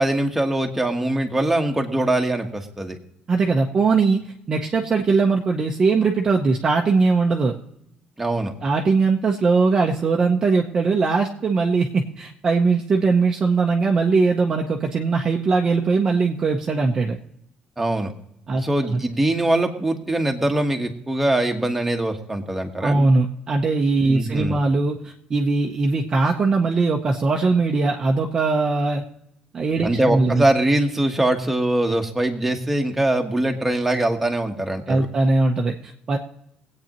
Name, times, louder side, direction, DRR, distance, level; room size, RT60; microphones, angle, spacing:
voice 1, 0.0-3.0 8.2-8.5 17.8-18.1 18.5-23.1 24.1-24.6 29.8-35.1, right 1 dB, 5° right, 2 dB, 1.3 m, -22 dB
voice 2, 3.3-4.2 4.5-7.6 8.6-17.2 18.5-19.0 22.8-29.0 29.5-30.4 34.9-36.2, right 4 dB, 25° right, 1 dB, 0.8 m, -20 dB
23.5 x 8.6 x 3.0 m, 0.77 s
cardioid pair, 180°, 2 cm